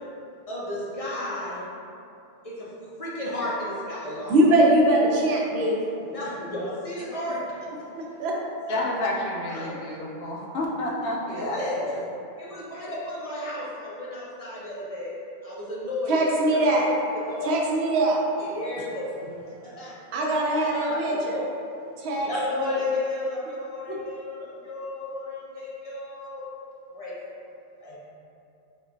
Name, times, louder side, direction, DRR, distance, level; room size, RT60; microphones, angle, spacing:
voice 1, 0.5-1.6 2.4-2.7 3.0-4.4 6.0-7.6 8.7-8.8 9.5-10.1 11.3-11.7 12.4-15.1 15.4-16.2 16.5-17.6 18.4-19.1 19.6-20.0 20.5-21.5 22.2-26.4 26.9-27.2 27.8-28.0, left 2 dB, 50° left, -7 dB, 0.5 m, -33 dB
voice 2, 4.3-5.8 7.9-8.4 16.1-16.9 17.4-18.2 20.1-21.4 22.0-22.3 23.9-24.0, right 1 dB, 85° right, -2 dB, 0.8 m, -22 dB
voice 3, 8.7-12.0, left 1 dB, 75° left, -3 dB, 0.8 m, -30 dB
4.2 x 2.2 x 2.5 m, 2.6 s
omnidirectional pair, 1.1 m